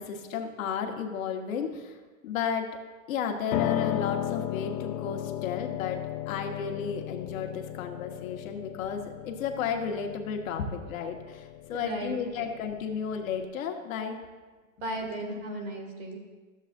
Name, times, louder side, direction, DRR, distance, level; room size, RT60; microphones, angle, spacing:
voice 1, 0.0-1.9 2.2-2.7 3.1-14.2, left 6 dB, 75° left, 3 dB, 1.3 m, -33 dB
Piano, 3.5-13.5, left 12 dB, 35° left, 0.4 m, -35 dB
voice 2, 11.7-12.5 14.8-16.2, right 1 dB, 55° right, 2 dB, 2.0 m, -36 dB
13.0 x 7.5 x 2.5 m, 1.3 s
supercardioid pair, 145°, 41 cm